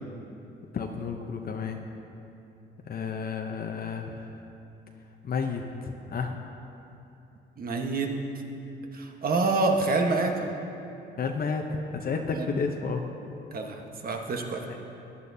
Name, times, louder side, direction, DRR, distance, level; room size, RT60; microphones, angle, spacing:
voice 1, 0.7-1.8 2.8-4.4 5.2-6.4 11.2-13.0 14.7-14.8, left 5 dB, 50° left, 3 dB, 0.8 m, -31 dB
voice 2, 7.6-8.1 8.9-10.3 12.3-12.5 13.5-14.6, right 3 dB, 50° right, 3 dB, 1.2 m, -27 dB
15.5 x 11.0 x 2.7 m, 2.8 s
cardioid pair, 90°, 20 cm